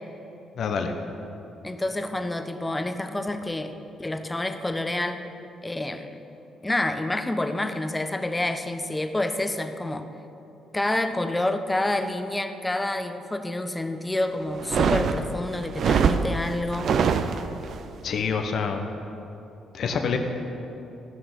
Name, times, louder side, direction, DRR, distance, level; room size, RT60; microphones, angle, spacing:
voice 1, 0.6-0.9 18.0-18.8 19.7-20.2, left 6 dB, 60° left, 5 dB, 1.1 m, -26 dB
voice 2, 1.6-3.7 4.0-5.2 5.6-6.2 6.6-10.1 10.7-16.9, left 1 dB, 15° left, 7 dB, 1.1 m, -28 dB
sound 1, 14.6-17.8, right 6 dB, 60° right, 0.6 m, -24 dB
14.5 x 6.3 x 8.0 m, 3.0 s
hypercardioid pair, 45°, 0 cm